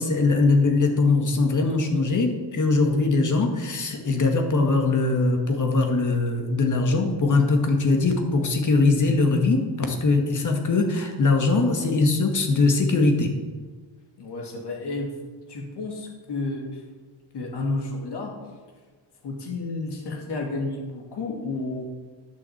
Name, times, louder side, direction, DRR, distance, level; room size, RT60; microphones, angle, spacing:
voice 1, 0.0-13.3, left 3 dB, 45° left, 3 dB, 1.9 m, -21 dB
voice 2, 14.2-15.1 15.5-16.8 17.3-18.3 19.2-21.8, left 3 dB, 65° left, 0 dB, 2.8 m, -31 dB
11.5 x 7.3 x 7.3 m, 1.4 s
wide cardioid pair, 140°, 43 cm